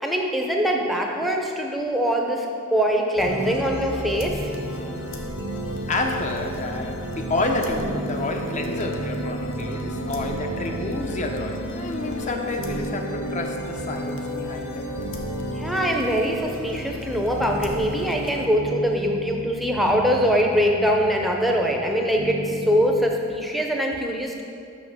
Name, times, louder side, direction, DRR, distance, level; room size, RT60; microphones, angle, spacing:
voice 1, 0.0-2.5 2.7-4.5 15.6-24.4, equal, ahead, 1 dB, 0.6 m, -23 dB
sound 1, 3.2-18.5, left 1 dB, 65° left, 0.9 m, -33 dB
sound 2, 3.2-23.1, right 2 dB, 65° right, 0.7 m, -35 dB
voice 2, 5.9-14.9, left 2 dB, 35° left, 3 dB, 0.7 m, -29 dB
6.5 x 6.2 x 6.0 m, 2.4 s
head